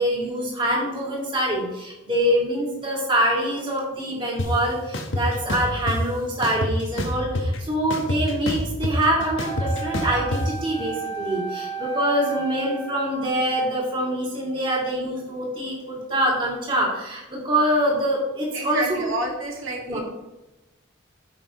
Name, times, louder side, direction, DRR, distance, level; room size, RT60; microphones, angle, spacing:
voice 1, 0.0-19.1 19.9-20.0, right 1 dB, 25° right, -4 dB, 2.7 m, -25 dB
sound 1, 4.4-4.5 4.9-6.0 6.4-7.6 7.9-10.4, left 1 dB, 80° left, 1.3 m, -27 dB
Wind instrument woodwind instrument, 9.4-13.2, right 5 dB, 15° left, 1.3 m, -33 dB
voice 2, 18.5-20.0, right 2 dB, 85° right, -1 dB, 2.2 m, -29 dB
15.0 x 5.9 x 3.1 m, 1.0 s
head